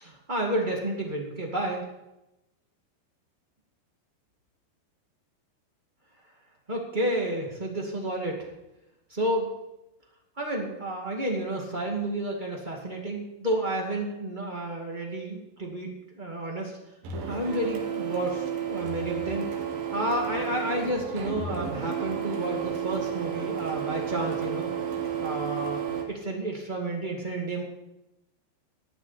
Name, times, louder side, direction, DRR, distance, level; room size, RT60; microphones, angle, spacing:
voice 1, 0.0-1.8 6.7-8.5 9.1-9.5 10.4-15.9 16.2-16.8 17.3-19.5 19.9-24.7 25.2-27.6, right 1 dB, 30° right, -1 dB, 0.8 m, -31 dB
Printer, 17.0-26.0, right 8 dB, 60° right, 3.2 m, -32 dB
15.0 x 7.0 x 9.9 m, 0.94 s
omnidirectional pair, 4.9 m